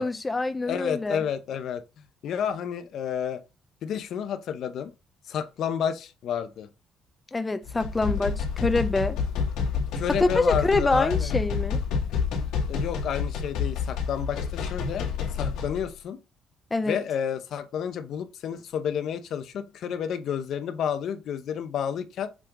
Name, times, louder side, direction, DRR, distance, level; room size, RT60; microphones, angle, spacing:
voice 1, 0.0-1.2 7.3-9.2 10.1-11.8 16.7-17.0, left 3 dB, 15° left, 0.5 m, -25 dB
voice 2, 0.7-1.8 2.2-3.4 3.8-4.9 5.3-6.7 9.9-11.3 12.7-15.1 15.3-16.2 16.8-22.3, left 8 dB, 60° left, 0.8 m, -30 dB
sound 1, 7.6-15.8, left 5 dB, 90° left, 2.2 m, -29 dB
7.3 x 3.8 x 3.9 m
cardioid pair, 125°, 0 cm